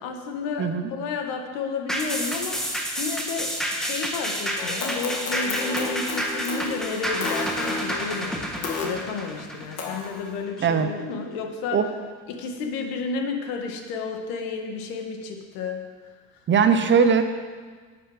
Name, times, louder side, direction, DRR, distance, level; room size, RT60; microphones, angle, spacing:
voice 1, 0.0-11.9 12.3-16.4, left 4 dB, 80° left, 4 dB, 1.8 m, -32 dB
sound 1, 1.9-10.6 11.0-11.1, equal, ahead, 1.5 m, -30 dB
sound 2, 4.6-8.9 9.8-10.4, left 3 dB, 45° left, 1.9 m, -32 dB
voice 2, 16.5-17.2, right 6 dB, 30° right, 8 dB, 0.7 m, -19 dB
11.5 x 9.0 x 5.1 m, 1.5 s
cardioid pair, 125°, 36 cm